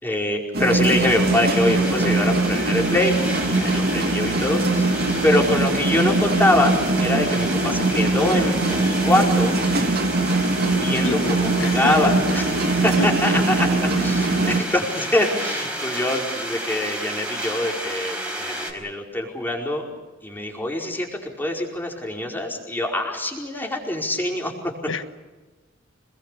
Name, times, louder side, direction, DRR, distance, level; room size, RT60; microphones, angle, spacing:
voice 1, 0.0-3.2 3.5-9.5 10.7-13.7 14.0-19.9 20.2-24.5, left 1 dB, 10° left, -1 dB, 4.9 m, -24 dB
sound 1, 0.5-14.6, right 2 dB, 55° right, 2.4 m, -22 dB
sound 2, 1.0-18.7, right 1 dB, 5° right, 4.8 m, -31 dB
voice 2, 11.0-11.3 11.6-12.1 12.9-13.1 24.8-25.0, left 2 dB, 70° left, 10 dB, 1.4 m, -27 dB
27.0 x 21.0 x 6.9 m, 1.2 s
head